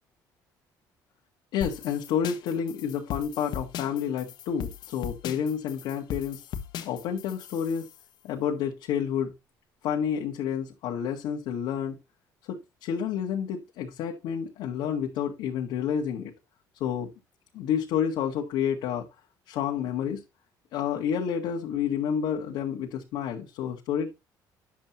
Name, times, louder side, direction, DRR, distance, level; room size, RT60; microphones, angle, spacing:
voice 1, 1.5-6.4 6.8-7.9 8.2-9.3 9.8-12.0 12.4-16.3 16.8-17.1 17.5-19.1 19.5-20.2 20.7-24.1, left 8 dB, 85° left, 1.6 m, -29 dB
sound 1, 1.6-8.0, left 8 dB, 65° left, 1.3 m, -38 dB
10.0 x 7.5 x 2.9 m
cardioid pair, 125°, 8 cm